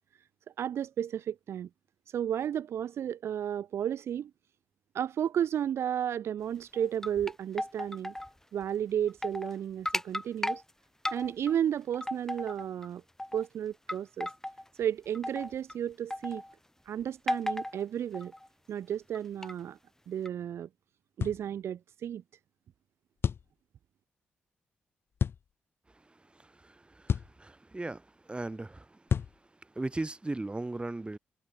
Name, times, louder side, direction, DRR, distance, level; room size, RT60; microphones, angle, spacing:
voice 1, 0.6-1.7 2.1-4.3 4.9-8.1 8.5-10.6 11.1-13.0 13.3-14.3 14.8-16.4 16.9-18.3 18.7-19.8 20.1-20.7 21.2-22.2, right 9 dB, 65° right, 0.9 m, -33 dB
sound 1, 6.7-8.3 8.6-8.7 9.1-9.6 9.9-10.6 11.0-11.6 11.9-12.9 13.2-13.5 13.9-14.6 15.1-15.7 16.1-16.5 17.3-17.8 18.1-18.5 19.1-19.5 20.3-20.4, left 1 dB, 10° left, 1.5 m, -35 dB
sound 2, 21.2-21.4 23.2-23.5 25.2-25.4 27.1-27.4 29.1-29.4, left 7 dB, 55° left, 1.2 m, -29 dB
voice 2, 25.9-31.2, right 2 dB, 20° right, 2.6 m, -39 dB
hypercardioid pair, 40°, 5 cm